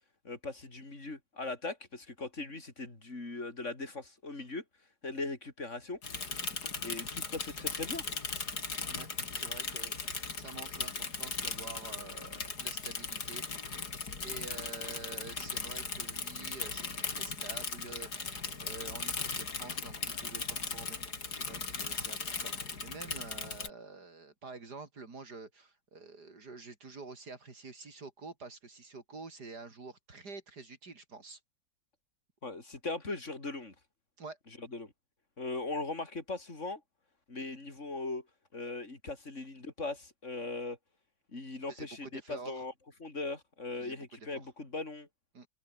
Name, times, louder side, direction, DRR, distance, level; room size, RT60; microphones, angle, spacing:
voice 1, 0.2-4.6 5.0-6.0 6.8-8.0 32.4-33.7 34.6-34.9 35.4-36.8 37.3-38.2 38.5-40.8 41.3-42.7 43.0-45.1, left 3 dB, 40° left, 5.0 m, -39 dB
Bicycle / Mechanisms, 6.0-23.7, left 4 dB, 65° left, 3.6 m, -38 dB
voice 2, 9.3-13.5 14.2-21.0 21.3-31.4 34.2-34.4 41.7-42.7 43.8-44.0 44.3-44.5 45.3-45.5, right 3 dB, 65° right, 3.9 m, -48 dB
omnidirectional pair, 1.8 m